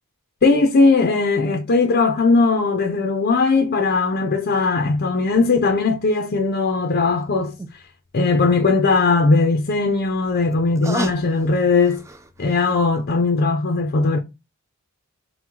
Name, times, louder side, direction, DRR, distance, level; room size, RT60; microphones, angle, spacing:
voice 1, 0.4-7.5 8.1-12.0 12.4-14.2, left 3 dB, 45° left, 0.6 m, -18 dB
sound 1, 7.2-7.3 7.6-7.7 9.6-12.7 13.1-13.2, right 1 dB, 15° right, 0.3 m, -33 dB
4.5 x 2.2 x 3.6 m
head